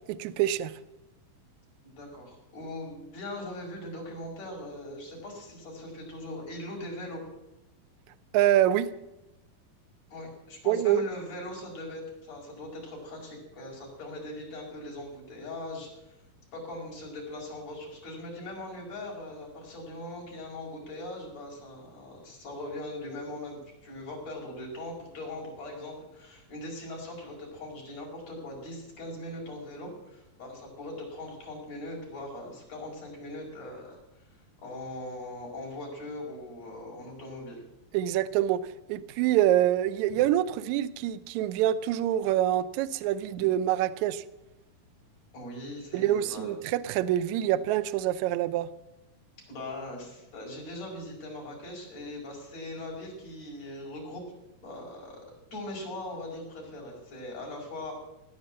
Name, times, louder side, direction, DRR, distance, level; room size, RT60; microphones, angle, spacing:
voice 1, 0.1-0.7 8.3-8.9 10.7-11.1 37.9-44.2 45.9-48.7, right 12 dB, 80° right, 13 dB, 1.7 m, -26 dB
voice 2, 1.8-7.2 10.1-16.2 16.5-34.0 34.3-37.6 40.1-40.2 45.3-46.5 49.5-54.2 54.6-55.2 55.5-58.0, left 1 dB, 45° left, -3 dB, 6.2 m, -40 dB
17.5 x 9.7 x 7.7 m, 0.95 s
omnidirectional pair, 4.2 m